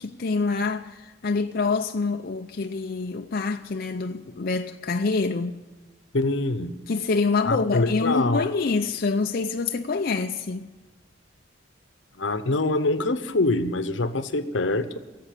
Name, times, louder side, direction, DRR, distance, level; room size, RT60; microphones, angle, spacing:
voice 1, 0.0-5.6 6.9-10.7, left 4 dB, 50° left, 0.5 m, -26 dB
voice 2, 6.1-6.8 7.4-8.5 12.2-15.0, left 2 dB, 80° left, 1.0 m, -24 dB
16.5 x 8.5 x 8.5 m
head